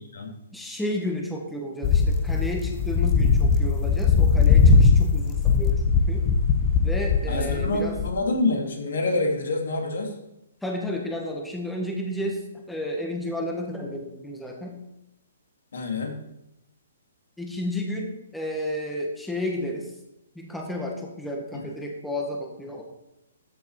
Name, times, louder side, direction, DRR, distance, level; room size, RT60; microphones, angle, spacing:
voice 1, 0.5-6.2 6.8-7.9 10.6-14.8 17.4-19.9 20.3-22.8, left 1 dB, 5° left, 0 dB, 1.5 m, -32 dB
sound 1, 1.8-8.1, left 5 dB, 25° left, 1.0 m, -20 dB
voice 2, 7.3-10.1 15.7-16.2 21.5-21.7, left 2 dB, 75° left, 2 dB, 2.6 m, -27 dB
13.5 x 6.5 x 4.8 m, 0.88 s
hypercardioid pair, 150°, 0 cm